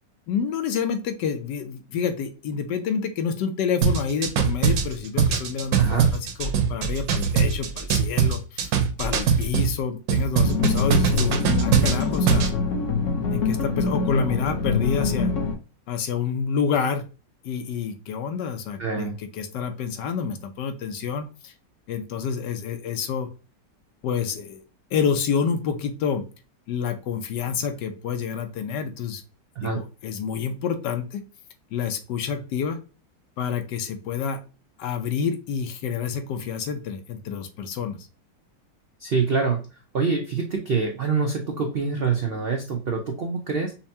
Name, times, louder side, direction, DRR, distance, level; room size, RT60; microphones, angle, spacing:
voice 1, 0.3-6.0 6.4-8.7 9.0-12.5 13.3-15.3 15.9-17.0 17.4-19.1 19.4-21.5 21.9-23.3 24.0-24.6 24.9-26.2 26.7-29.2 29.6-31.2 31.7-32.8 33.4-34.4 34.8-38.0, left 6 dB, 75° left, 7 dB, 1.3 m, -28 dB
sound 1, 3.8-9.7 10.1-12.5, right 6 dB, 65° right, 1.1 m, -22 dB
voice 2, 5.8-6.1 18.8-19.1 29.5-29.8 39.0-43.7, right 5 dB, 85° right, 2 dB, 0.5 m, -25 dB
sound 2, 10.4-15.5, left 4 dB, 55° left, 0.9 m, -25 dB
5.6 x 2.2 x 2.7 m, 0.33 s
omnidirectional pair, 1.9 m